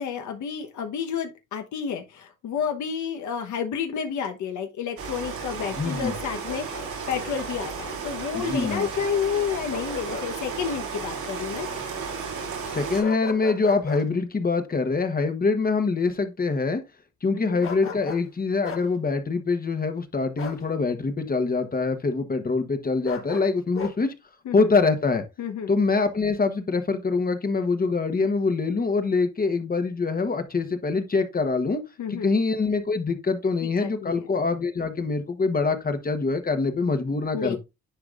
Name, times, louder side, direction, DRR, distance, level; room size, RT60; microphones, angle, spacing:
voice 1, 0.0-11.7 17.3-17.6 24.4-24.7 25.4-25.7 32.0-32.4 33.6-34.3 37.3-37.6, left 7 dB, 70° left, 1.1 m, -30 dB
Rain, 5.0-13.0, right 5 dB, 75° right, 2.9 m, -34 dB
voice 2, 5.7-6.1 8.3-8.9 12.6-16.8 17.2-24.1 24.5-25.2 25.7-31.8 32.1-37.6, left 4 dB, 30° left, 1.2 m, -24 dB
Bark, 5.8-6.9 9.7-10.3 10.7-10.8 13.0-14.1 17.6-18.3 18.6-18.9 20.4-20.6 23.0-24.0, left 5 dB, 45° left, 1.7 m, -36 dB
10.0 x 4.8 x 2.5 m
cardioid pair, 90°, 30 cm